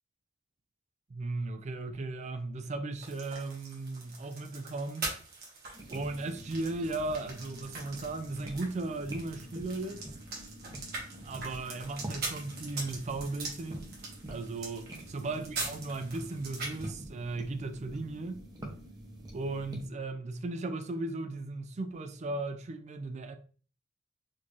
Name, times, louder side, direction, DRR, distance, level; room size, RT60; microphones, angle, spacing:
voice 1, 1.1-5.1 5.9-10.1 11.2-13.9 14.3-18.5 19.3-23.4, right 2 dB, 35° right, 0.4 m, -36 dB
sound 1, 3.0-16.9, right 3 dB, 55° right, 1.3 m, -43 dB
sound 2, 5.7-19.9, right 1 dB, 20° right, 0.8 m, -46 dB
4.3 x 2.7 x 3.0 m
head